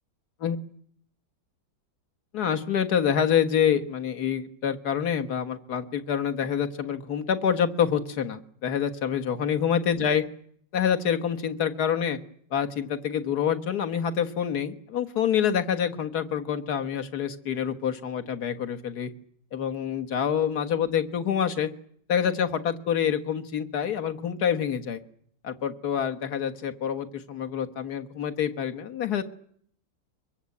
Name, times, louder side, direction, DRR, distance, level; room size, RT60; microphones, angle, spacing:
voice 1, 2.3-10.2 10.7-12.2 12.5-19.1 19.5-21.7 22.1-25.0 25.4-29.2, left 8 dB, 55° left, 8 dB, 1.9 m, -27 dB
23.0 x 22.5 x 8.5 m, 0.64 s
omnidirectional pair, 2.1 m